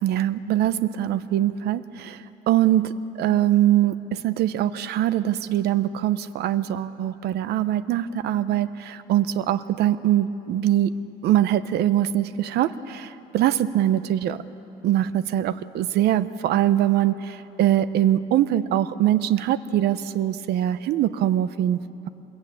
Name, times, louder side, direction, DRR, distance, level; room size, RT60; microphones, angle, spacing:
voice 1, 0.0-2.9 3.2-11.0 11.2-14.4 14.8-22.1, right 12 dB, 75° right, 14 dB, 0.9 m, -23 dB
27.0 x 22.0 x 8.7 m, 2.9 s
cardioid pair, 110°, 17 cm